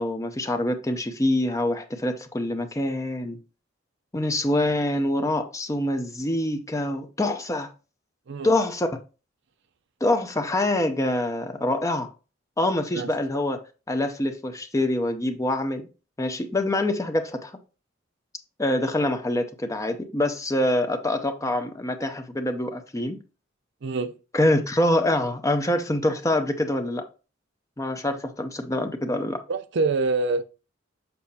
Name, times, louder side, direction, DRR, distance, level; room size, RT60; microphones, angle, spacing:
voice 1, 0.0-3.4 4.1-7.7 8.4-8.9 10.0-12.1 12.6-13.6 13.9-15.9 16.2-17.5 18.6-23.2 24.3-27.0 27.8-29.4, left 1 dB, 15° left, 0.6 m, -25 dB
voice 2, 23.8-24.1 29.5-30.5, right 3 dB, 60° right, 0.5 m, -25 dB
6.9 x 5.6 x 2.8 m
head